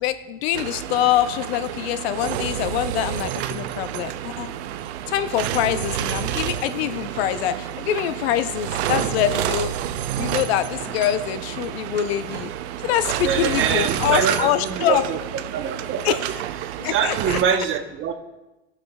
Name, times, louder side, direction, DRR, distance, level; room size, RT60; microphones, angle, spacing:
voice 1, 0.0-4.5 5.1-9.8 10.2-12.5 12.8-15.0 16.0-16.2 16.8-17.4, left 11 dB, 70° left, 12 dB, 0.6 m, -24 dB
sound 1, 0.5-17.4, right 11 dB, 80° right, 0.5 m, -29 dB
voice 2, 13.2-15.2 15.5-18.1, right 7 dB, 40° right, 7 dB, 0.8 m, -25 dB
15.5 x 5.8 x 2.2 m, 1.0 s
hypercardioid pair, 105°, 32 cm